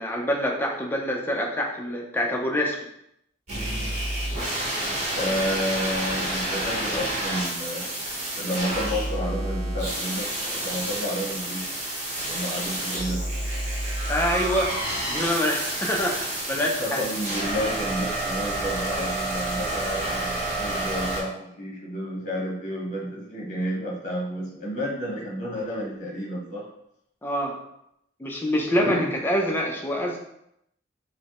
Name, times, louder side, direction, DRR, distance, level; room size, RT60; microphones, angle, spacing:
voice 1, 0.0-2.8 14.1-17.0 27.2-27.6 28.2-30.2, equal, 10° left, -1 dB, 0.5 m, -26 dB
sound 1, 3.5-21.2, right 1 dB, 35° right, 1.1 m, -29 dB
voice 2, 5.1-7.9 8.3-11.7 12.3-13.2 16.5-26.6 28.7-29.1, equal, 40° left, -3 dB, 1.1 m, -31 dB
5.1 x 2.2 x 2.9 m, 0.78 s
head